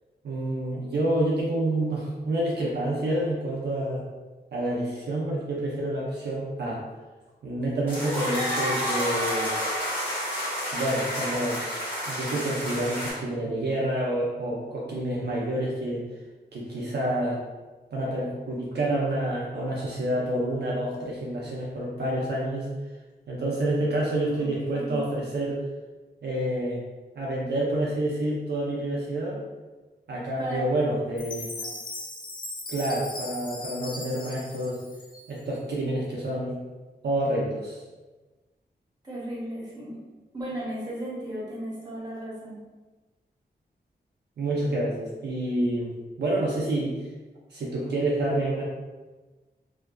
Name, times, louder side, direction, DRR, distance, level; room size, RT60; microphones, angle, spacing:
voice 1, 0.2-4.0 4.5-6.8 7.4-9.6 10.7-11.8 12.1-16.0 16.5-17.4 17.9-22.7 23.3-25.6 26.2-26.8 27.2-29.4 30.1-31.5 32.7-34.8 35.3-36.6 37.0-37.8 44.4-45.9 46.2-46.9 47.5-48.6, right 1 dB, 70° right, -4 dB, 0.5 m, -28 dB
sound 1, 7.9-13.1, equal, 10° left, 1.0 m, -30 dB
voice 2, 24.3-25.0 30.4-30.7 31.6-31.7 39.0-40.0 40.3-42.6, right 1 dB, 25° right, -7 dB, 1.0 m, -35 dB
Chime, 31.2-35.5, left 2 dB, 25° left, 0.3 m, -39 dB
2.5 x 2.2 x 2.2 m, 1.2 s
wide cardioid pair, 90°, 18 cm